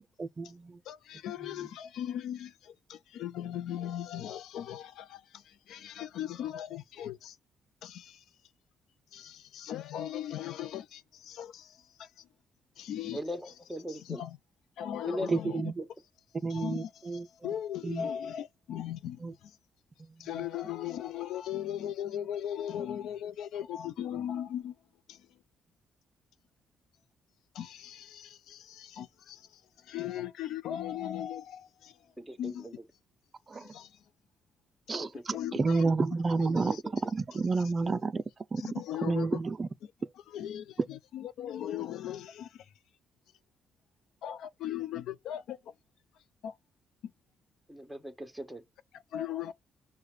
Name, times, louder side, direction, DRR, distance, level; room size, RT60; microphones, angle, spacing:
voice 1, 0.2-0.8 15.3-15.7 16.4-17.2 17.8-18.0 19.2-19.3 33.5-33.7 34.9-36.7 37.1-38.2 38.5-38.6 39.0-39.7, right 3 dB, 35° right, 0.4 m, -30 dB
voice 2, 0.9-7.4 7.8-8.2 9.1-12.3 12.8-13.2 13.9-14.4 14.8-15.7 16.5-19.6 20.2-24.8 25.1-25.3 27.5-32.1 32.4-32.7 33.5-34.0 34.9-35.1 35.3-35.8 36.6-36.8 37.3-37.4 38.6-39.4 39.8-39.9 40.3-42.7 44.2-45.7 46.4-46.6 47.0-47.1 48.9-49.5, left 10 dB, 80° left, 0.4 m, -38 dB
voice 3, 13.1-14.2 15.0-15.3 32.2-32.7 35.0-35.2 36.4-36.9 47.7-48.6, equal, ahead, 1.2 m, -39 dB
4.9 x 2.2 x 4.8 m
cardioid pair, 90°, 0 cm